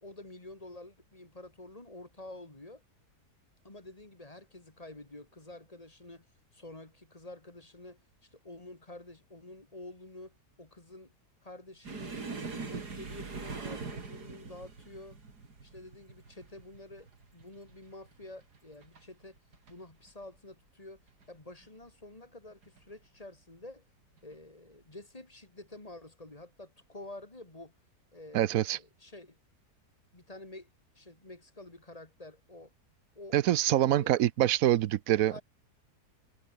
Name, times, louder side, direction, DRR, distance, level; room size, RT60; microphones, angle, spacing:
voice 1, 0.0-2.8 3.6-6.3 6.5-11.1 11.4-12.2 12.4-15.2 15.6-19.4 19.7-21.0 21.3-23.8 24.2-27.7 28.1-29.4 30.1-30.7 30.9-32.7 33.1-33.4 33.7-34.2 35.3-35.4, left 2 dB, 20° left, 2.5 m, -49 dB
sound 1, 11.8-19.1 19.4-19.7 20.1-20.2 21.1-21.6 22.6-22.8 24.2-24.3, right 4 dB, 85° right, 3.7 m, -43 dB
voice 2, 28.3-28.8 33.3-35.4, right 13 dB, 65° right, 1.0 m, -25 dB
omnidirectional pair, 1.7 m